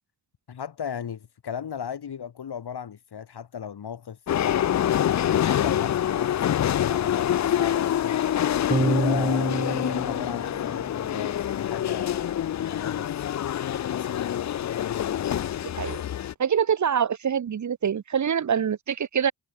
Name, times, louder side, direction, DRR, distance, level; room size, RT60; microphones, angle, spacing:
voice 1, 0.5-4.7 5.2-8.3 8.8-14.6, left 8 dB, 85° left, 3.5 m, -37 dB
sound 1, 4.3-16.3, left 10 dB, 50° left, 0.4 m, -26 dB
sound 2, 8.7-11.3, right 3 dB, 20° right, 1.2 m, -28 dB
voice 2, 15.6-16.0 16.4-19.3, right 7 dB, 50° right, 0.7 m, -25 dB
cardioid pair, 80°, 38 cm